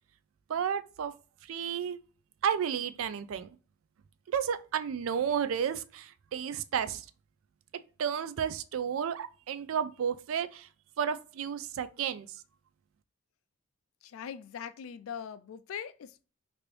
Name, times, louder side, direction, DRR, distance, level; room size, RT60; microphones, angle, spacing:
voice 1, 0.5-1.1 1.5-2.0 2.4-3.5 4.3-7.0 8.0-10.7 11.0-12.3, right 8 dB, 80° right, 0.3 m, -32 dB
voice 2, 14.0-16.2, left 8 dB, 85° left, 0.3 m, -41 dB
3.0 x 2.6 x 3.1 m
head